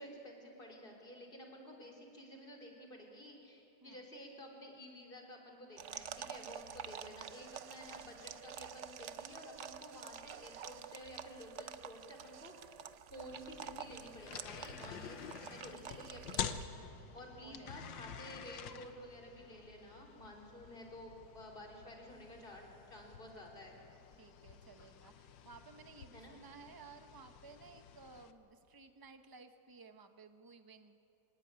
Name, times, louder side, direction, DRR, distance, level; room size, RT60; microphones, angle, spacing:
voice 1, 0.0-12.5 13.1-16.7 17.1-23.8 26.1-26.3, equal, 30° left, 1 dB, 3.8 m, -52 dB
sound 1, 5.8-16.6, right 8 dB, 65° right, 0.7 m, -49 dB
sound 2, 13.3-28.3, left 8 dB, 85° left, 1.7 m, -49 dB
voice 2, 15.1-15.6 17.4-18.2 24.2-31.0, right 4 dB, 25° right, 7 dB, 0.5 m, -57 dB
26.0 x 19.0 x 8.8 m, 2.9 s
omnidirectional pair, 2.0 m